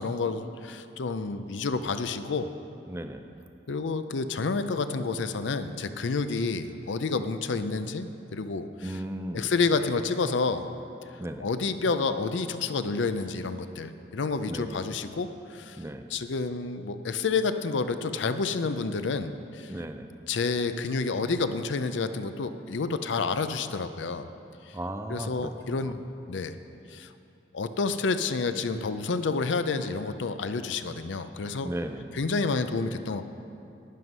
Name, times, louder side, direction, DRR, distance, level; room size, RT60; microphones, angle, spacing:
voice 1, 0.0-2.5 3.7-9.0 9.3-10.7 11.4-15.8 16.1-19.7 20.3-24.2 24.7-24.8 25.1-26.0 26.3-26.6 26.9-27.1 27.5-31.7 32.1-33.2, left 4 dB, 80° left, 10 dB, 0.5 m, -29 dB
voice 2, 2.9-3.2 8.8-9.5 11.2-11.5 14.5-14.8 15.8-16.1 19.7-20.1 24.7-25.5 25.8-25.9 31.6-32.1, right 1 dB, 15° right, 7 dB, 0.4 m, -35 dB
12.0 x 9.4 x 5.4 m, 2.7 s
head